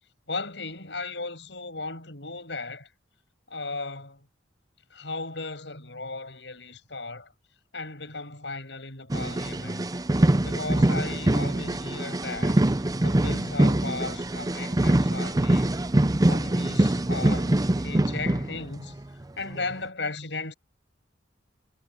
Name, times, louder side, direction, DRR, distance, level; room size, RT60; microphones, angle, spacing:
voice 1, 0.3-2.9 3.5-4.3 4.9-7.3 7.7-9.9 10.4-12.6 13.0-15.8 16.3-17.5 17.8-19.0 19.4-20.5, left 3 dB, 75° left, 7.1 m, -36 dB
sound 1, 9.1-19.0 19.5-19.7, right 1 dB, 20° right, 0.6 m, -24 dB
head